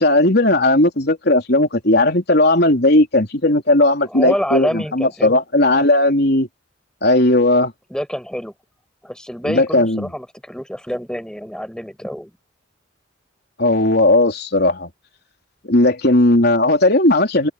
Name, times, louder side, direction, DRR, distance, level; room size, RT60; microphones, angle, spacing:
voice 1, 0.0-6.5 7.0-7.7 9.4-10.1 13.6-14.9 15.7-17.5, left 2 dB, 55° left, 3.6 m, -16 dB
voice 2, 4.1-5.4 7.9-8.5 9.0-12.3, equal, 5° left, 6.3 m, -27 dB
open air
head